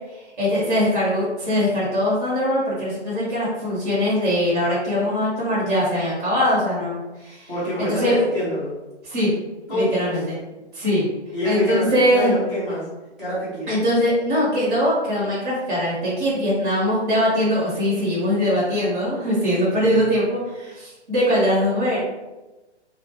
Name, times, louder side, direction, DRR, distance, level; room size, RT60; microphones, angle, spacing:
voice 1, 0.1-7.5 7.8-8.2 9.0-9.3 9.7-10.4 10.7-11.1 11.4-12.3 13.7-22.0, equal, 45° right, -8 dB, 1.1 m, -21 dB
voice 2, 7.5-8.7 9.7-10.2 11.3-12.9 13.2-13.7 19.8-20.2, left 1 dB, ahead, -15 dB, 0.5 m, -26 dB
2.4 x 2.1 x 2.9 m, 1.1 s
hypercardioid pair, 140°, 34 cm